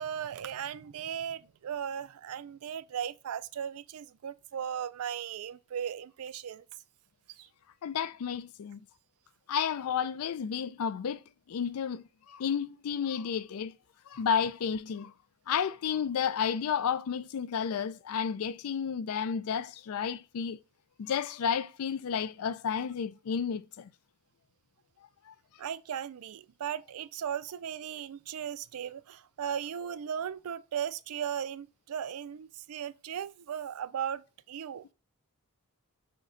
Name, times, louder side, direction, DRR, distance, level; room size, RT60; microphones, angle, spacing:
voice 1, 0.0-6.6 7.3-7.5 25.6-34.9, right 8 dB, 70° right, 0.4 m, -37 dB
voice 2, 7.8-8.8 9.5-11.2 11.5-13.7 14.1-15.1 15.5-20.6 21.0-23.9 25.3-25.4, left 7 dB, 70° left, 0.4 m, -32 dB
6.5 x 2.2 x 3.7 m
head